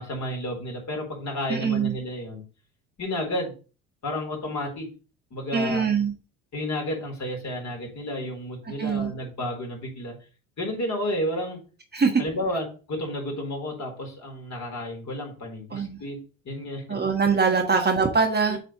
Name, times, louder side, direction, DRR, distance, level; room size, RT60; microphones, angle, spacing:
voice 1, 0.0-2.4 3.0-3.5 4.0-4.9 5.3-5.9 6.5-10.1 10.6-11.6 12.2-16.8 17.6-17.7 18.5-18.6, left 1 dB, 40° left, 0 dB, 4.1 m, -31 dB
voice 2, 1.5-1.9 5.5-6.1 8.8-9.1 11.9-12.2 15.7-16.0 16.9-18.6, right 5 dB, 25° right, 2 dB, 1.4 m, -23 dB
8.1 x 4.2 x 3.9 m, 0.34 s
hypercardioid pair, 65°, 42 cm